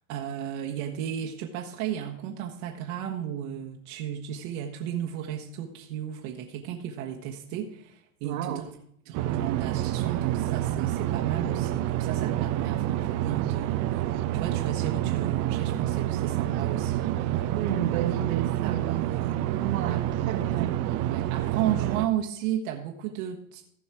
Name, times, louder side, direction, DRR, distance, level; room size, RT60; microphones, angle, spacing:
voice 1, 0.0-8.6 9.0-17.4 18.3-19.0 19.9-20.1 20.5-20.7 21.0-23.6, right 10 dB, 50° right, 1 dB, 1.3 m, -34 dB
voice 2, 8.2-8.6 17.3-20.8, right 10 dB, 70° right, 3 dB, 1.7 m, -32 dB
sound 1, 9.1-22.1, right 13 dB, 35° right, 0.6 m, -28 dB
15.0 x 5.4 x 4.7 m, 0.68 s
hypercardioid pair, 100°, 43 cm